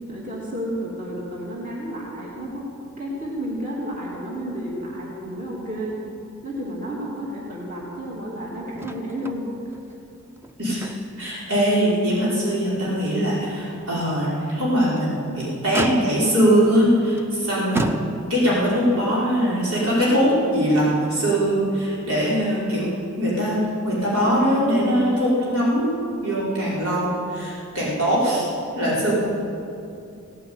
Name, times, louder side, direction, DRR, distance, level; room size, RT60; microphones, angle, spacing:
voice 1, 0.1-2.6 3.0-6.0 6.4-9.5 19.1-19.2, equal, 40° right, -4 dB, 2.8 m, -31 dB
Motor vehicle (road), 8.8-9.4 9.7-9.8 10.4-11.3 11.7-11.9 12.4-12.5 14.7-15.2 15.7-16.4 17.2-17.3 17.7-18.5 19.6-19.7, right 1 dB, 10° right, 0.6 m, -29 dB
voice 2, 10.6-10.9 11.2-18.0 18.3-28.5 28.7-29.1, equal, 85° right, -7 dB, 4.9 m, -21 dB
17.5 x 9.4 x 8.7 m, 2.6 s
head